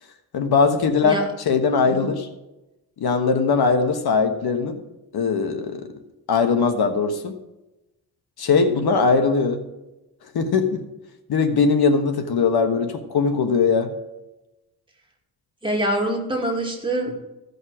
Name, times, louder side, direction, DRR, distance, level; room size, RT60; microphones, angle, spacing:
voice 1, 0.3-1.2 1.5-2.3 3.0-4.8 5.1-5.9 6.3-7.3 8.4-9.6 10.3-10.7 11.3-13.9, left 5 dB, 80° left, 7 dB, 1.3 m, -20 dB
voice 2, 15.6-17.2, right 1 dB, 15° right, 0 dB, 2.2 m, -25 dB
15.5 x 5.4 x 4.9 m, 0.98 s
wide cardioid pair, 120°, 38 cm